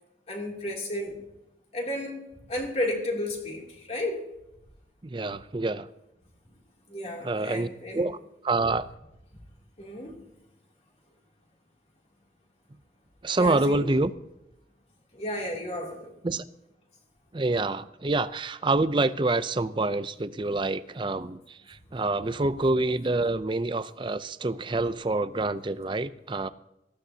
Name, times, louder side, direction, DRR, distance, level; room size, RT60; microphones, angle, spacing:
voice 1, 0.3-1.2 1.7-4.3 6.9-8.1 9.8-10.2 13.4-13.9 15.1-16.1, left 1 dB, 35° left, -1 dB, 2.9 m, -33 dB
voice 2, 5.0-5.9 7.2-7.7 7.9-8.2 8.4-8.9 13.2-14.1 16.2-16.4 17.3-26.5, right 2 dB, 30° right, 13 dB, 0.5 m, -27 dB
19.0 x 15.0 x 2.8 m, 0.90 s
head